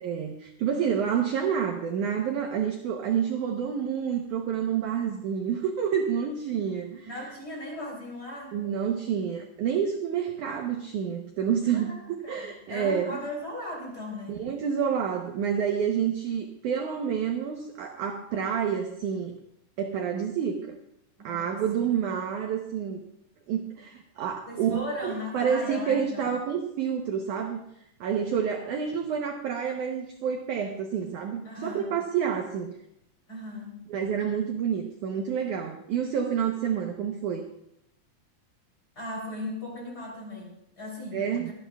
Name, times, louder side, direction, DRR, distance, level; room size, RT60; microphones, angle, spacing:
voice 1, 0.0-7.1 8.5-12.0 12.3-13.2 14.3-19.4 19.8-20.7 21.2-23.0 23.5-27.6 28.0-32.7 33.9-37.4 41.1-41.5, right 7 dB, 75° right, 3 dB, 1.9 m, -28 dB
voice 2, 7.1-8.6 11.7-14.4 21.2-21.9 24.5-26.3 31.4-32.0 33.3-33.8 39.0-41.5, left 1 dB, 25° left, -2 dB, 3.4 m, -38 dB
24.5 x 10.5 x 2.3 m, 0.78 s
omnidirectional pair, 4.6 m